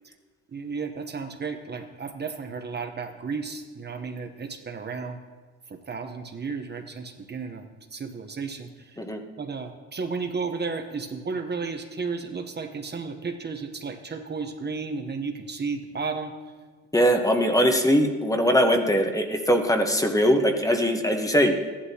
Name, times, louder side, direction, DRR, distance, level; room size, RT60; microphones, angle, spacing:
voice 1, 0.5-5.2 5.7-7.7 7.9-8.7 9.4-16.3, right 4 dB, 35° right, 5 dB, 0.9 m, -33 dB
voice 2, 16.9-21.7, equal, 10° left, 4 dB, 1.0 m, -21 dB
14.5 x 11.5 x 2.8 m, 1.4 s
cardioid pair, 90°, 30 cm